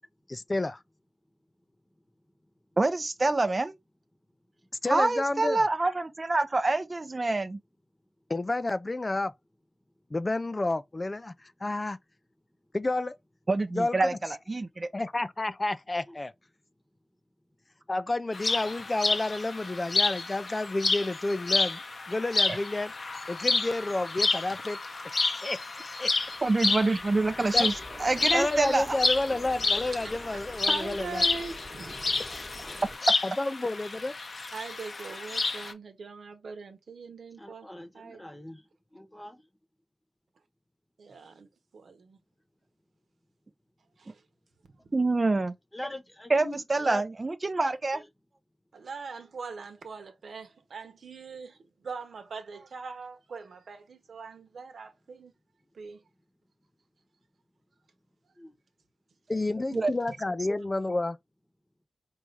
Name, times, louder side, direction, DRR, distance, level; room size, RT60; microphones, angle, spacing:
voice 1, 0.3-0.8 4.8-5.6 8.3-9.3 10.1-12.0 12.7-13.1 13.7-14.1 14.9-16.3 17.9-21.8 22.1-24.8 25.3-26.1 27.5-27.7 28.3-31.2 33.2-34.1 59.3-61.2, left 2 dB, 30° left, 0.4 m, -30 dB
voice 2, 2.8-3.8 4.9-7.6 13.5-14.9 22.5-22.6 26.4-27.7 28.0-29.0 44.9-45.5 46.3-48.0 59.7-59.9, right 2 dB, 35° right, 0.5 m, -26 dB
sound 1, 18.3-35.7, left 3 dB, 55° left, 0.7 m, -30 dB
sound 2, 26.1-33.0, right 1 dB, 15° right, 1.2 m, -47 dB
voice 3, 30.7-32.2 34.5-37.7 37.9-38.3 41.0-41.5 41.7-42.2 44.0-44.2 44.8-44.9 48.7-55.3 55.7-56.0, right 4 dB, 80° right, 1.0 m, -42 dB
voice 4, 37.4-39.5 45.7-47.0 47.9-48.0 58.4-58.6, left 1 dB, 15° left, 1.0 m, -42 dB
4.7 x 2.7 x 3.3 m
wide cardioid pair, 75°, 0 cm